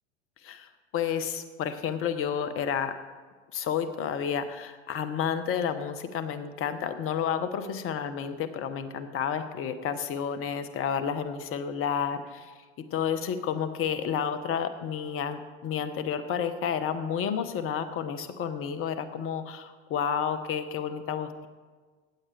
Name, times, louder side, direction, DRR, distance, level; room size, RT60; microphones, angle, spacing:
voice 1, 0.4-3.0 3.5-12.5 12.9-21.5, left 7 dB, 40° left, 11 dB, 0.9 m, -31 dB
15.5 x 8.7 x 3.3 m, 1.4 s
hypercardioid pair, 80°, 35 cm